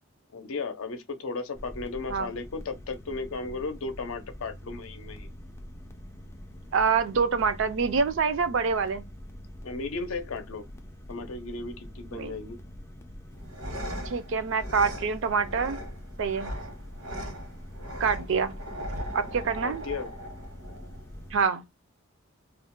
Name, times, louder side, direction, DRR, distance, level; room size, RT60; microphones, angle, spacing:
voice 1, 0.3-5.3 9.6-10.7 11.1-12.6 19.6-20.1, left 3 dB, 75° left, 0.6 m, -35 dB
sound 1, 1.5-21.5, equal, 15° left, 0.3 m, -45 dB
voice 2, 6.7-9.0 12.1-12.3 14.1-15.8 16.2-16.5 18.0-18.5 19.1-19.8 21.3-21.6, right 5 dB, 60° right, 0.4 m, -26 dB
sound 2, 13.3-21.3, equal, 85° right, 1.0 m, -39 dB
2.4 x 2.1 x 3.6 m
head